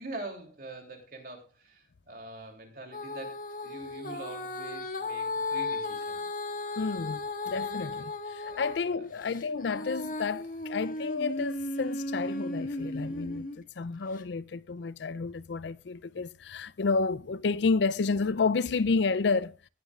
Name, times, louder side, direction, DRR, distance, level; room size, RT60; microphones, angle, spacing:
voice 1, 0.0-3.4 3.6-6.2 8.4-9.1, right 2 dB, 50° right, 3.0 m, -44 dB
Female singing, 2.9-8.8 9.3-13.6 14.2-14.3, left 2 dB, 45° left, 1.6 m, -35 dB
voice 2, 6.8-13.5 13.8-19.5, left 4 dB, 70° left, 0.5 m, -30 dB
18.5 x 9.6 x 2.4 m
head